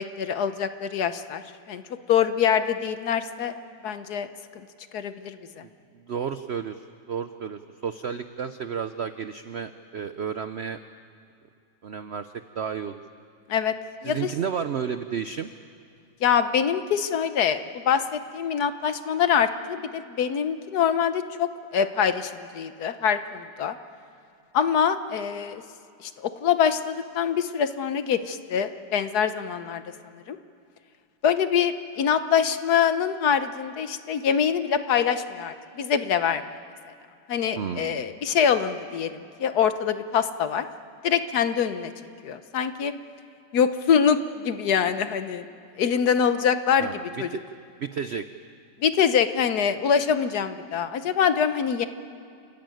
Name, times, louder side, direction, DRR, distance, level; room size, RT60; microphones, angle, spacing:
voice 1, 0.0-1.4 1.7-1.8 2.1-3.5 3.8-4.3 4.5-4.6 4.9-5.6 13.5-13.7 14.0-14.3 16.2-23.8 24.5-25.6 26.0-29.8 30.3-30.4 31.2-36.4 37.3-40.7 41.0-41.9 42.2-42.9 43.5-45.5 45.8-46.9 47.2-47.3 48.8-51.9, left 7 dB, 65° left, 10 dB, 1.3 m, -24 dB
voice 2, 5.6-10.8 11.8-13.0 14.0-15.5 37.6-38.0 46.8-47.0 47.3-47.4 47.8-48.3, right 7 dB, 75° right, 10 dB, 0.6 m, -32 dB
28.5 x 14.5 x 9.1 m, 2.5 s
omnidirectional pair, 2.0 m